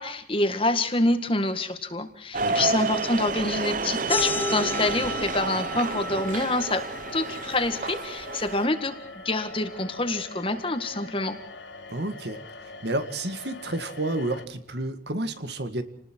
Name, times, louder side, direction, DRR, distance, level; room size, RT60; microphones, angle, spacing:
voice 1, 0.0-6.9 7.1-8.9 9.3-11.4, left 2 dB, 30° left, 8 dB, 1.8 m, -26 dB
sound 1, 2.3-8.7, right 4 dB, 45° right, 0.8 m, -30 dB
voice 2, 2.4-2.7 11.9-12.4 12.8-15.8, right 2 dB, 65° right, 9 dB, 2.0 m, -30 dB
sound 2, 3.8-14.4, left 3 dB, 75° left, 2.0 m, -43 dB
sound 3, 4.1-9.3, left 2 dB, 10° left, 1.0 m, -34 dB
29.0 x 20.0 x 4.6 m, 0.72 s
head